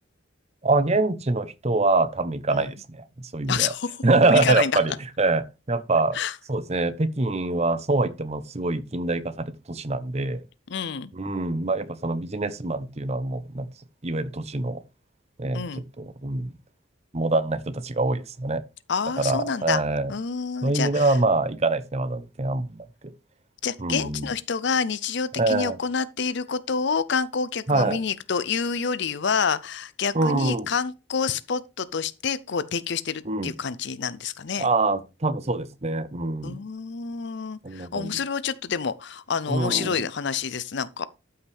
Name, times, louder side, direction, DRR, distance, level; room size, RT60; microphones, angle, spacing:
voice 1, 0.6-3.7 4.0-6.2 6.5-10.4 11.1-13.7 14.0-14.8 15.4-16.5 17.1-18.6 19.2-20.1 20.6-22.9 23.8-24.3 25.4-25.8 27.7-28.0 30.1-30.7 33.2-33.5 34.6-36.6 37.6-38.1 39.5-40.1, right 2 dB, 30° right, 0.8 m, -25 dB
voice 2, 3.5-4.0 4.3-4.7 6.1-6.3 10.7-11.1 15.5-15.8 18.9-19.8 20.1-21.1 23.6-34.7 36.4-41.1, left 6 dB, 60° left, 0.6 m, -28 dB
12.5 x 5.8 x 3.4 m
head